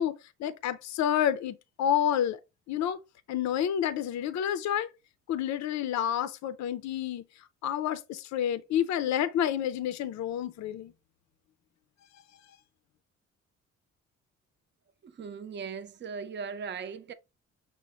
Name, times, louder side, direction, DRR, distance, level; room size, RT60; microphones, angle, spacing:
voice 1, 0.0-2.4 2.7-3.0 3.3-4.9 5.3-7.2 7.6-10.9, left 10 dB, 65° left, 0.5 m, -29 dB
voice 2, 15.0-17.1, right 6 dB, 35° right, 0.6 m, -38 dB
6.2 x 2.1 x 4.1 m
cardioid pair, 90°, 30 cm